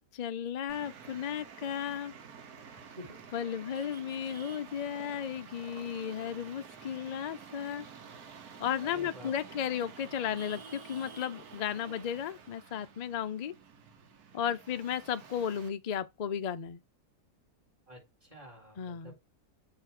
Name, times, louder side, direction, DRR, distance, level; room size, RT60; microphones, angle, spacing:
voice 1, 0.1-2.1 3.3-7.9 8.6-13.5 14.3-16.8 18.8-19.1, left 9 dB, 55° left, 0.4 m, -34 dB
Traffic noise roadway noise, 0.7-15.7, right 6 dB, 85° right, 1.6 m, -50 dB
voice 2, 8.8-9.3 17.9-19.2, equal, 20° right, 4.2 m, -49 dB
7.0 x 3.3 x 5.9 m
omnidirectional pair, 1.6 m